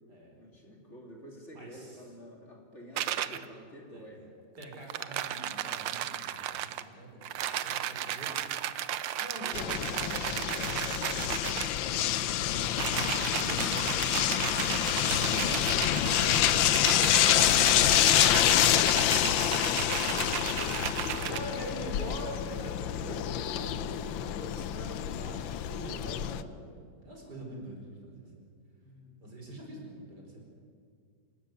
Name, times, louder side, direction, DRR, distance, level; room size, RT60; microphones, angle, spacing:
voice 1, 0.4-4.2 9.4-9.8 19.8-21.7 22.9-23.2 23.7-23.9 25.3-25.5 28.7-29.4, equal, 35° left, 0 dB, 3.4 m, -49 dB
voice 2, 1.5-2.0 3.9-4.1 4.6-8.4 9.2-14.6 15.0-18.3 18.9-20.3 21.1-23.2 23.5-28.5 29.2-30.4, right 1 dB, 60° right, 0 dB, 5.5 m, -44 dB
sound 1, 3.0-3.4 4.6-6.9 7.2-11.8 12.7-21.4, right 11 dB, 80° right, 1.5 m, -34 dB
sound 2, 9.5-26.4, left 12 dB, 90° left, 1.5 m, -27 dB
27.0 x 13.0 x 9.6 m, 2.2 s
omnidirectional pair, 2.0 m